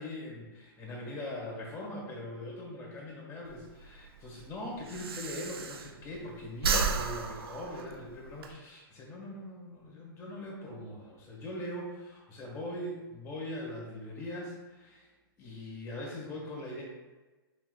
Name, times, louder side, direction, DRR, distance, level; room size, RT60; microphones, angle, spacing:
voice 1, 0.0-15.1 15.4-16.8, left 1 dB, 25° left, -2 dB, 1.4 m, -41 dB
Breathing, 3.4-6.2 6.5-8.5, right 4 dB, 85° right, 0.5 m, -33 dB
5.8 x 2.8 x 2.3 m, 1.2 s
hypercardioid pair, 130°, 12 cm